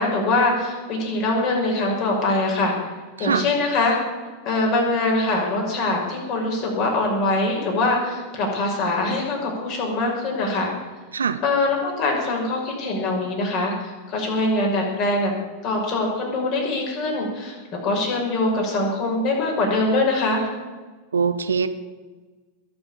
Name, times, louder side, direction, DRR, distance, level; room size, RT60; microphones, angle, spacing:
voice 1, 0.0-2.8 3.2-4.0 4.4-10.7 11.4-15.3 15.6-17.6 17.8-20.5, left 2 dB, 40° left, 0 dB, 6.0 m, -23 dB
voice 2, 21.1-21.7, right 6 dB, 70° right, 11 dB, 1.0 m, -22 dB
21.0 x 7.2 x 8.7 m, 1.3 s
figure-of-eight pair, 90°, 0 cm